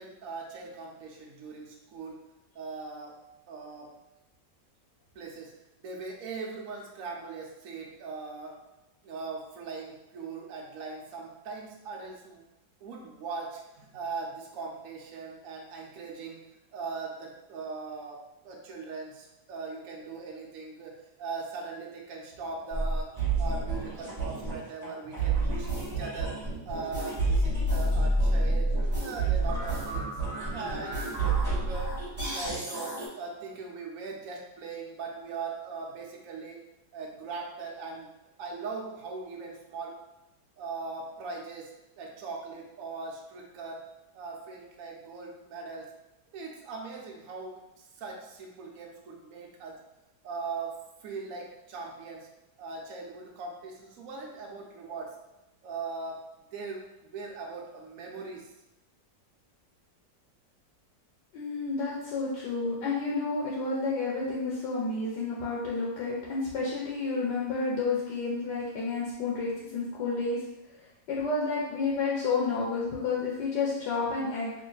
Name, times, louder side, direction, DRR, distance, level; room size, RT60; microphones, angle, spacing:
voice 1, 0.0-2.2 2.5-3.2 3.5-3.9 5.1-5.5 5.8-8.6 9.0-12.4 12.8-16.4 16.7-23.1 23.4-26.4 26.6-28.7 29.0-30.1 30.5-31.0 31.4-31.9 32.3-36.6 36.9-38.1 38.4-40.0 40.6-41.7 42.0-43.8 44.1-45.9 46.3-49.8 50.2-52.3 52.6-55.1 55.6-56.2 56.5-58.4, right 4 dB, 60° right, -1 dB, 0.9 m, -40 dB
sound 1, 22.7-33.1, right 2 dB, 15° right, 1.0 m, -29 dB
voice 2, 61.3-70.4 71.1-74.6, left 4 dB, 75° left, -5 dB, 1.3 m, -30 dB
3.3 x 2.7 x 3.8 m, 0.95 s
omnidirectional pair, 2.0 m